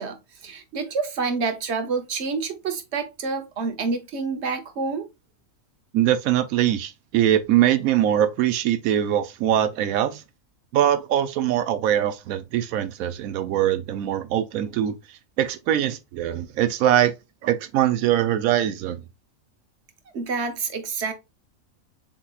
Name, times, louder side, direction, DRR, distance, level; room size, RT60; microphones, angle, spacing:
voice 1, 0.0-5.1 20.1-21.1, right 4 dB, 55° right, 1.1 m, -28 dB
voice 2, 5.9-10.2 10.7-14.9 15.4-17.1 17.4-19.0, right 11 dB, 90° right, 1.1 m, -22 dB
7.3 x 2.9 x 2.3 m
omnidirectional pair, 1.4 m